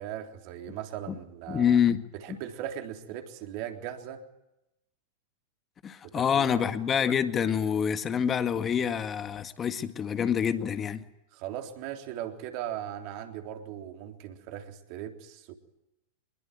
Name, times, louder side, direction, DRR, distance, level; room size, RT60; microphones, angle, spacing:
voice 1, 0.0-1.8 2.1-4.2 6.0-6.7 11.3-15.5, right 10 dB, 45° right, 3.6 m, -38 dB
voice 2, 1.5-2.0 5.8-11.0, left 8 dB, 25° left, 1.9 m, -26 dB
26.0 x 22.0 x 9.2 m
figure-of-eight pair, 90°, 0 cm